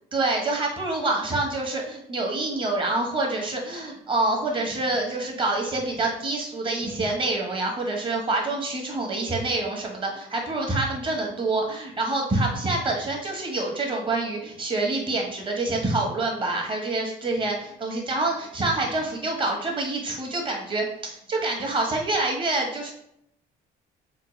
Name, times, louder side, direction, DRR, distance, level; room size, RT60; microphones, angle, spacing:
voice 1, 0.1-22.9, right 2 dB, 30° right, 0 dB, 0.9 m, -26 dB
3.6 x 2.1 x 3.0 m, 0.74 s
cardioid pair, 110°, 17 cm